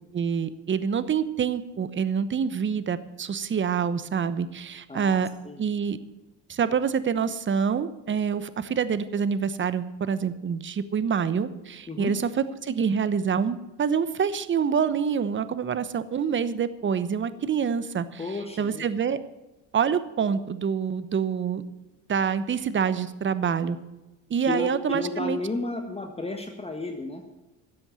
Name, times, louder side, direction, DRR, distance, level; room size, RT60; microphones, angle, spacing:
voice 1, 0.1-5.3 5.6-6.0 6.5-12.3 12.6-18.2 18.6-19.2 19.7-21.6 22.1-23.8 24.3-25.4, right 7 dB, 30° right, 14 dB, 1.0 m, -26 dB
voice 2, 4.9-5.6 11.9-12.1 18.2-18.8 24.4-27.2, left 2 dB, 15° left, 4 dB, 1.4 m, -33 dB
12.5 x 8.0 x 8.9 m, 1.0 s
supercardioid pair, 85°, 38 cm